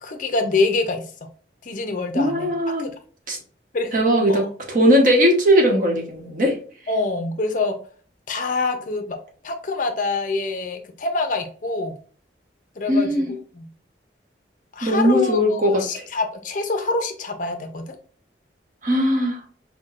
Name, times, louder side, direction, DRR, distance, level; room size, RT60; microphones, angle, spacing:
voice 1, 0.0-1.1 1.6-2.5 2.8-2.9 3.7-3.9 4.3-4.5 6.9-7.8 8.3-9.2 9.4-11.9 12.8-13.7 14.7-18.0, left 3 dB, 45° left, 6 dB, 0.5 m, -25 dB
voice 2, 2.1-2.9 3.3-3.4 3.9-4.4 4.7-6.6 12.9-13.3 14.8-16.1 18.8-19.4, equal, 45° right, 1 dB, 0.9 m, -19 dB
5.7 x 2.1 x 2.4 m, 0.43 s
head